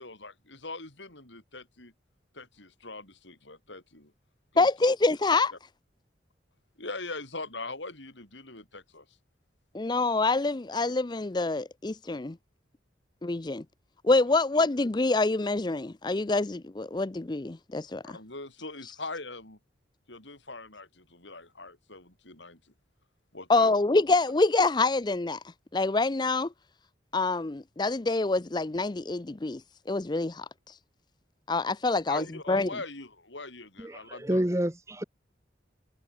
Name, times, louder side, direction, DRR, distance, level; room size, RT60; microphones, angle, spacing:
voice 1, 0.0-1.9 2.3-4.1 4.5-4.7 5.5-5.6 6.8-9.1 18.0-19.6 20.1-22.6 23.3-23.7 32.1-34.4, left 3 dB, 75° left, 7.1 m, -41 dB
voice 2, 4.6-5.5 9.7-12.3 13.2-13.6 14.0-18.2 23.5-25.4 25.7-26.5 27.1-29.6 29.9-30.8 31.5-32.7, left 3 dB, 25° left, 0.5 m, -26 dB
voice 3, 33.8-35.0, right 1 dB, 15° right, 1.2 m, -29 dB
head